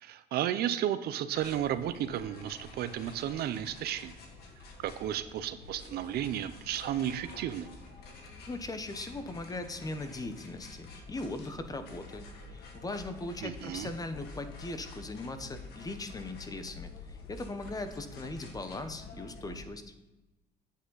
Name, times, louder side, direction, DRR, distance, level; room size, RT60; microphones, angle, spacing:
voice 1, 0.0-4.1 4.8-7.7 13.4-13.9, right 11 dB, 70° right, 12 dB, 0.6 m, -33 dB
sound 1, 1.3-19.7, left 3 dB, 70° left, 1.9 m, -48 dB
voice 2, 8.5-19.8, left 2 dB, 20° left, 9 dB, 0.9 m, -39 dB
8.4 x 7.8 x 4.0 m, 1.1 s
cardioid pair, 110°, 17 cm